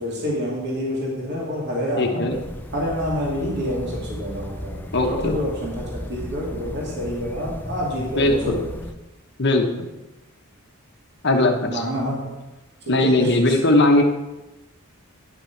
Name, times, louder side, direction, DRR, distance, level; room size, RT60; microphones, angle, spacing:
voice 1, 0.0-2.2 2.7-8.6 11.7-12.2 12.9-13.3, equal, 50° right, -4 dB, 2.5 m, -27 dB
voice 2, 2.0-2.4 4.9-5.4 8.1-8.6 9.4-9.9 11.2-11.8 12.9-14.0, left 2 dB, 50° left, 4 dB, 1.0 m, -19 dB
sound 1, 2.3-8.9, left 1 dB, 10° left, 0.5 m, -35 dB
10.5 x 5.9 x 5.8 m, 1.0 s
head